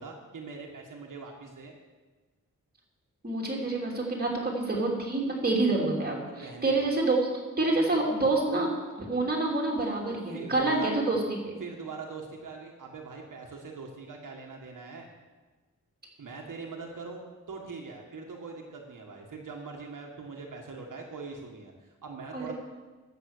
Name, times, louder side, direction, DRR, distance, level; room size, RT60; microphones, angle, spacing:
voice 1, 0.0-1.7 6.3-6.8 10.1-10.9 11.6-15.1 16.2-17.2 17.5-22.5, right 4 dB, 80° right, 0 dB, 1.6 m, -42 dB
voice 2, 3.2-7.3 7.6-11.6 22.3-22.5, right 2 dB, 30° right, -1 dB, 2.8 m, -27 dB
13.0 x 7.9 x 6.7 m, 1.3 s
wide cardioid pair, 125°, 31 cm